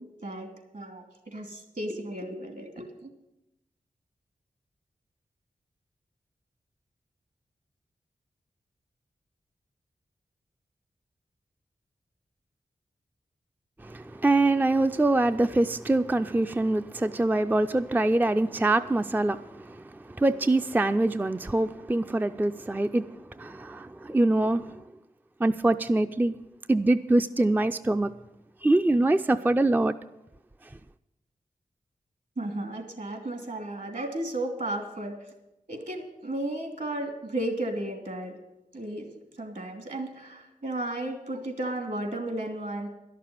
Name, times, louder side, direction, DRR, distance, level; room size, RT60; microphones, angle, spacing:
voice 1, 0.7-3.1 32.4-35.1 35.7-38.3 38.7-39.1 39.4-42.9, right 1 dB, 60° right, 5 dB, 2.6 m, -34 dB
voice 2, 13.8-24.8 25.4-26.3 26.7-28.1 28.6-29.9, right 2 dB, 10° right, 9 dB, 0.4 m, -24 dB
11.5 x 6.7 x 9.5 m, 0.93 s
cardioid pair, 40°, 15 cm